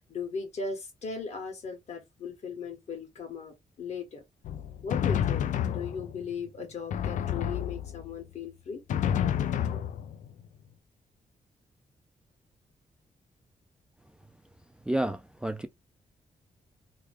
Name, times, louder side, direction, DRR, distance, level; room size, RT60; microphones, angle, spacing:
voice 1, 0.1-4.2 4.8-8.8, left 5 dB, 60° left, 1.6 m, -37 dB
Drum, 4.4-6.3 6.9-8.2 8.9-10.4, left 9 dB, 75° left, 0.4 m, -30 dB
voice 2, 14.9-15.7, right 1 dB, 5° right, 0.3 m, -30 dB
3.4 x 2.2 x 3.1 m
wide cardioid pair, 145°, 13 cm